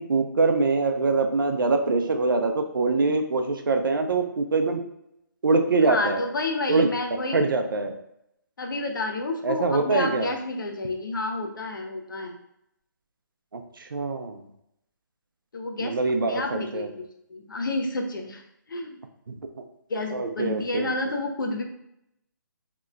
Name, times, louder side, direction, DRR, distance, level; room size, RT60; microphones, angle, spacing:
voice 1, 0.0-4.8 5.4-6.2 6.7-6.9 7.3-8.0 9.4-10.3 13.5-14.4 15.8-16.9 19.3-19.4 20.1-20.9, right 3 dB, 80° right, 5 dB, 0.5 m, -24 dB
voice 2, 5.8-7.5 8.6-12.4 15.5-18.4 18.7-19.0 19.9-21.6, left 2 dB, 75° left, 3 dB, 0.6 m, -30 dB
2.9 x 2.2 x 3.6 m, 0.77 s
hypercardioid pair, 165°, 11 cm